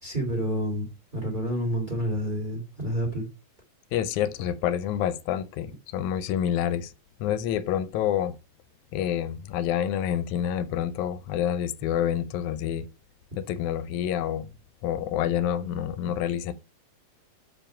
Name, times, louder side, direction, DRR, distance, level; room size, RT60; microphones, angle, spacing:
voice 1, 0.0-0.9 1.1-3.2, equal, 15° right, 2.6 m, -29 dB
voice 2, 3.9-6.9 7.2-8.3 8.9-12.9 13.4-14.5 14.8-16.5, left 10 dB, 85° left, 2.0 m, -28 dB
7.2 x 5.0 x 4.9 m
omnidirectional pair, 3.4 m